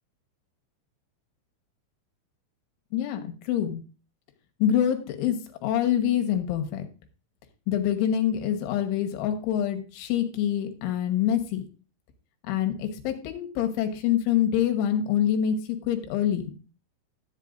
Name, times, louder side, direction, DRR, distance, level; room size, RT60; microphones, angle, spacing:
voice 1, 2.9-3.8 4.6-6.9 7.7-11.6 12.5-16.6, left 10 dB, 80° left, 6 dB, 3.6 m, -26 dB
14.0 x 9.1 x 2.6 m, 0.34 s
omnidirectional pair, 5.6 m